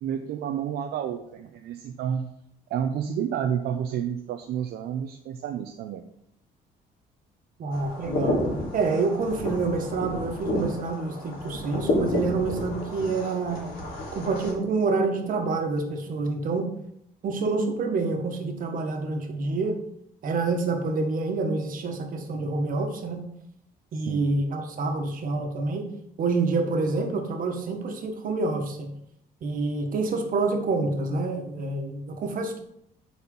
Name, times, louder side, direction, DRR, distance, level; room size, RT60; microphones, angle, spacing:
voice 1, 0.0-2.3 2.7-6.1 24.1-24.3, right 8 dB, 70° right, 5 dB, 0.7 m, -30 dB
voice 2, 7.6-8.4 8.7-13.7 14.1-16.7 17.2-19.8 20.2-23.2 23.9-25.9 26.2-28.9 29.4-32.6, right 3 dB, 55° right, 4 dB, 1.5 m, -27 dB
sound 1, 7.7-14.5, left 1 dB, 60° left, 3.2 m, -31 dB
8.7 x 4.3 x 5.4 m, 0.73 s
cardioid pair, 110°, 17 cm